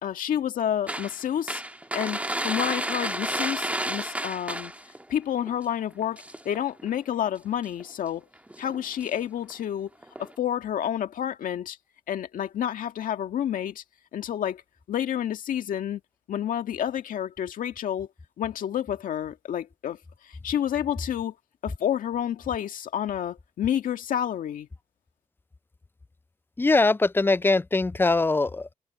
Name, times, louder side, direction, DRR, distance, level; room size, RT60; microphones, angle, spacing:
voice 1, 0.0-1.6 1.9-4.7 5.1-8.3 8.6-9.9 10.2-11.8 12.1-13.8 14.1-14.6 14.9-16.0 16.3-18.1 18.4-20.0 20.2-21.3 21.6-24.7, left 10 dB, 80° left, 1.9 m, -29 dB
sound 1, 0.9-5.0 5.4-5.6 5.9-6.9 7.6-7.9 8.5-9.2 9.4-9.5 10.0-10.3, right 1 dB, 10° right, 1.8 m, -32 dB
voice 2, 26.6-28.7, left 3 dB, 15° left, 0.4 m, -22 dB
cardioid pair, 60°, 14 cm